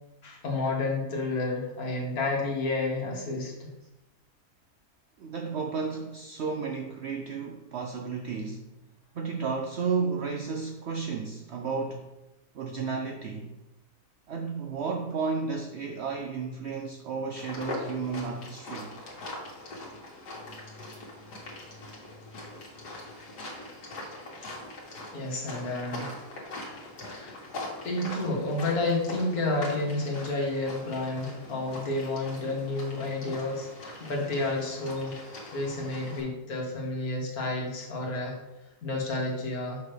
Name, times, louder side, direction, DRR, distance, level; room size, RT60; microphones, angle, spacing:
voice 1, 0.2-3.7 25.1-26.2 26.7-26.8 27.1-27.3 27.8-35.2 35.5-38.4 38.8-39.8, left 2 dB, 70° left, -1 dB, 1.8 m, -30 dB
voice 2, 5.2-8.7 9.1-12.1 12.5-13.6 14.3-18.9, right 5 dB, 70° right, 4 dB, 0.6 m, -33 dB
sound 1, 17.4-36.2, left 2 dB, 90° left, 2.0 m, -42 dB
6.1 x 5.7 x 3.3 m, 0.97 s
omnidirectional pair, 1.7 m